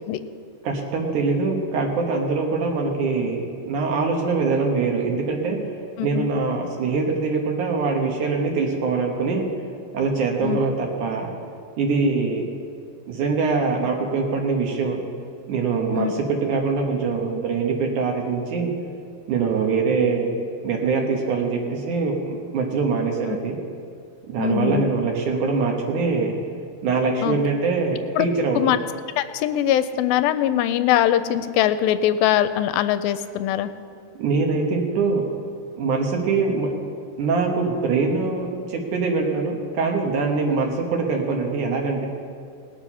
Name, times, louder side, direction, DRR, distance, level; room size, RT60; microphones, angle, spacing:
voice 1, 0.6-5.6 6.0-9.5 9.9-11.3 11.8-12.6 13.1-15.0 15.5-18.7 19.3-20.4 20.6-23.6 24.3-26.3 26.8-28.7 34.2-35.2 35.8-36.7 37.2-42.1, right 4 dB, 65° right, 1 dB, 2.5 m, -23 dB
voice 2, 6.0-6.3 10.4-10.6 15.9-16.1 24.4-24.9 27.2-27.4 28.2-28.3 28.6-28.8 29.2-33.7, left 11 dB, 85° left, 12 dB, 2.3 m, -21 dB
19.0 x 7.4 x 5.5 m, 2.3 s
omnidirectional pair, 4.2 m